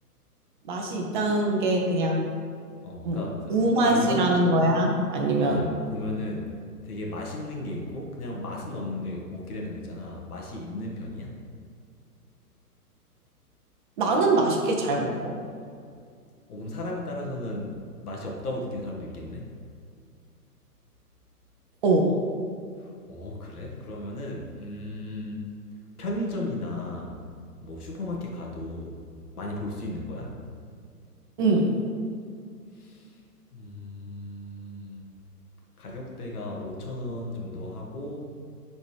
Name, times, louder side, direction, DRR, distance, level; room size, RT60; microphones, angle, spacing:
voice 1, 0.7-2.2 3.0-3.2 3.5-5.7 14.0-15.4 21.8-22.1 31.4-31.7, right 2 dB, 30° right, 1 dB, 0.7 m, -23 dB
voice 2, 2.8-4.3 5.4-6.5 6.8-11.3 16.5-17.7 18.0-19.5 22.8-25.4 26.0-27.1 27.6-29.0 29.4-30.3 32.8-33.1 33.5-35.1 35.8-38.3, left 1 dB, 65° left, -1 dB, 1.6 m, -35 dB
10.5 x 4.2 x 3.3 m, 2.3 s
figure-of-eight pair, 125°, 47 cm